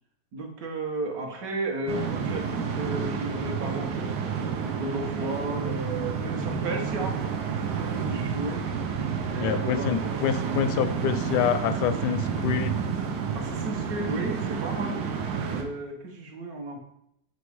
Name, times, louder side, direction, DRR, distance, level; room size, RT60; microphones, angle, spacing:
voice 1, 0.3-4.2 4.7-7.2 7.5-8.6 9.3-10.2 13.3-15.0 15.5-16.8, right 1 dB, 65° right, 2 dB, 1.4 m, -34 dB
sound 1, 1.9-15.6, right 6 dB, 85° right, 1.4 m, -30 dB
voice 2, 9.4-12.8, left 9 dB, 85° left, 10 dB, 1.2 m, -26 dB
7.0 x 3.1 x 4.7 m, 0.77 s
omnidirectional pair, 1.7 m